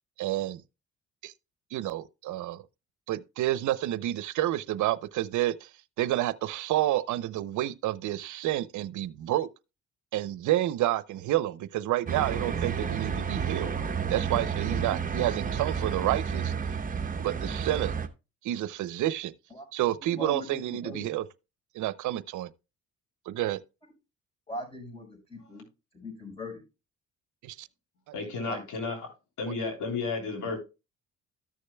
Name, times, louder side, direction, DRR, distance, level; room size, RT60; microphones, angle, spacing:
voice 1, 0.2-0.6 1.2-1.3 1.7-2.6 3.1-5.7 6.0-9.5 10.1-13.7 14.1-16.5 17.2-17.9 18.4-19.3 19.7-21.2 21.7-22.5 23.3-23.6 27.4-27.7 28.3-28.4 29.5-29.6, right 14 dB, 75° right, 0.6 m, -29 dB
sound 1, 12.1-18.1, right 6 dB, 25° right, 0.9 m, -31 dB
voice 2, 20.1-21.1 24.5-25.7 25.9-26.6 28.5-28.6, left 2 dB, 20° left, 5.0 m, -40 dB
voice 3, 28.1-29.0 29.4-30.6, left 4 dB, 80° left, 3.5 m, -32 dB
14.0 x 6.5 x 2.2 m
cardioid pair, 90°, 30 cm